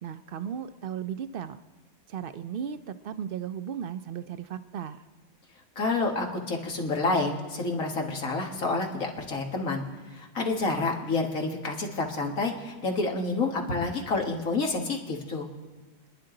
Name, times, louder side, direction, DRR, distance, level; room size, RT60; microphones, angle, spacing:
voice 1, 0.0-1.6 2.1-5.0, right 8 dB, 60° right, 11 dB, 0.6 m, -35 dB
voice 2, 5.8-9.8 10.1-15.5, left 3 dB, 80° left, 1 dB, 2.1 m, -29 dB
29.5 x 10.5 x 3.8 m, 1.3 s
omnidirectional pair, 1.4 m